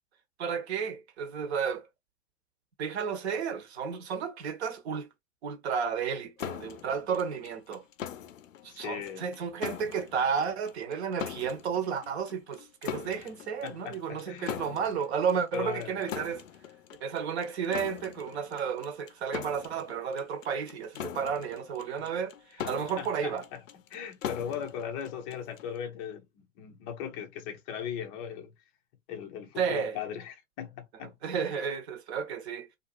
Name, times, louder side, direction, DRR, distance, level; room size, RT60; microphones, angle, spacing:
voice 1, 0.4-1.9 2.8-5.1 5.4-7.8 8.6-16.4 17.0-23.5 29.6-30.0 31.2-32.7, right 6 dB, 50° right, 1.0 m, -32 dB
sound 1, 6.4-25.8, left 10 dB, 70° left, 0.5 m, -42 dB
voice 2, 8.7-9.3 13.2-13.3 13.6-14.6 15.5-16.1 23.0-23.6 23.9-26.3 26.6-28.5 29.1-31.2 31.5-31.6, left 8 dB, 20° left, 0.5 m, -38 dB
2.5 x 2.5 x 2.3 m
figure-of-eight pair, 110°, 41 cm